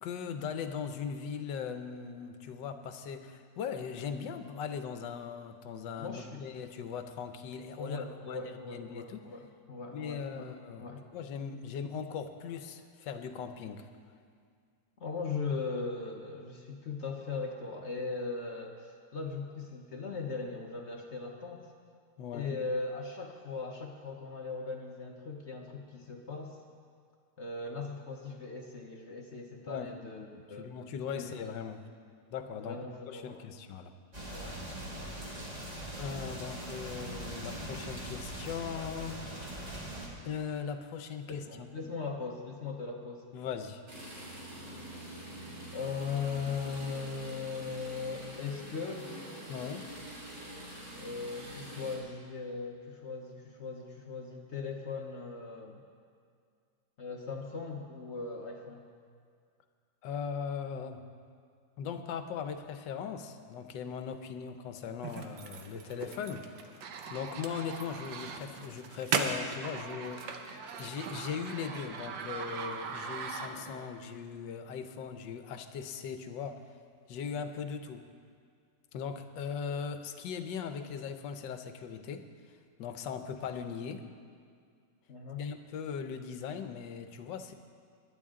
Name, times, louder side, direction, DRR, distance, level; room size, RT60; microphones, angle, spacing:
voice 1, 0.0-9.2 9.9-13.9 22.2-22.6 29.7-30.0 30.3-31.8 32.3-32.8 33.1-33.9 36.0-39.3 40.2-41.8 43.3-43.8 49.5-49.9 60.0-61.0 61.8-66.6 67.1-70.5 70.8-76.6 77.1-78.1 78.9-82.3 82.8-84.1 85.4-87.5, left 6 dB, 75° left, 8 dB, 1.4 m, -39 dB
voice 2, 6.0-6.5 7.8-10.5 10.8-11.0 15.0-21.7 22.3-26.6 27.4-30.7 31.1-31.3 32.6-33.5 34.2-35.2 41.3-43.3 45.7-49.1 51.0-55.8 57.0-58.9 85.1-85.5, left 4 dB, 50° left, 2 dB, 0.9 m, -39 dB
sound 1, 34.1-40.1, right 1 dB, 20° right, 2.1 m, -41 dB
sound 2, 43.9-52.0, right 1 dB, 35° right, 3.2 m, -45 dB
sound 3, 65.0-73.9, right 5 dB, 75° right, 1.6 m, -38 dB
20.5 x 11.0 x 3.7 m, 2.2 s
omnidirectional pair, 2.0 m